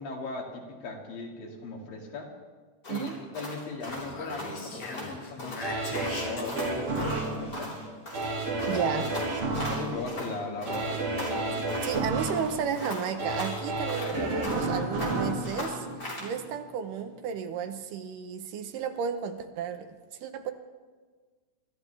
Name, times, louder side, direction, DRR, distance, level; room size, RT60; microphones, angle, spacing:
voice 1, 0.0-2.3 2.9-7.8 9.0-9.1 9.7-11.8 13.9-14.3 15.3-15.5, left 3 dB, 85° left, -1 dB, 4.0 m, -38 dB
sound 1, 2.8-5.1 5.4-5.7 5.9-10.3 10.6-12.0 12.3-14.7 15.0-16.3, left 1 dB, 30° left, 4.5 m, -39 dB
Speech, 3.8-7.7, left 2 dB, 60° left, 3.9 m, -40 dB
sound 2, 5.6-16.6 17.0-17.1, right 2 dB, 40° right, 2.8 m, -32 dB
voice 2, 8.7-9.1 11.8-15.9 16.2-19.9 20.2-20.5, right 7 dB, 75° right, 8 dB, 2.4 m, -33 dB
24.5 x 13.5 x 3.4 m, 1.4 s
omnidirectional pair, 3.9 m